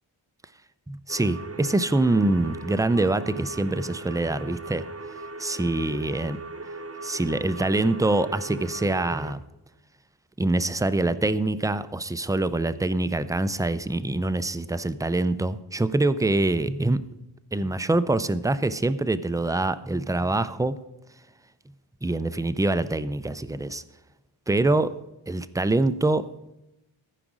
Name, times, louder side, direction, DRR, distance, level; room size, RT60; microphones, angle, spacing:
voice 1, 0.9-4.9 5.4-6.4 7.0-9.4 10.4-17.1 17.5-20.8 22.0-23.8 24.5-25.0 25.3-26.3, right 2 dB, 10° right, 14 dB, 0.3 m, -25 dB
sound 1, 1.1-9.3, right 3 dB, 30° right, 0.8 m, -39 dB
14.0 x 5.0 x 6.1 m, 0.92 s
wide cardioid pair, 70°, 50 cm